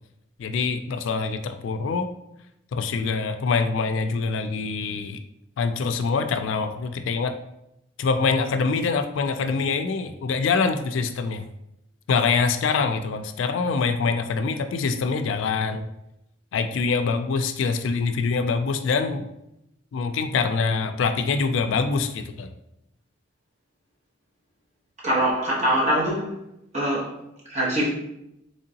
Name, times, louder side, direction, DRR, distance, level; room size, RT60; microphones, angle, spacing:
voice 1, 0.4-2.1 2.7-5.2 5.6-7.4 8.0-11.5 12.1-15.9 16.5-19.3 19.9-22.5, left 4 dB, 75° left, 0.3 m, -24 dB
voice 2, 25.0-26.3 26.7-27.1 27.5-27.9, equal, 35° right, 1.2 m, -23 dB
3.7 x 3.2 x 2.8 m
head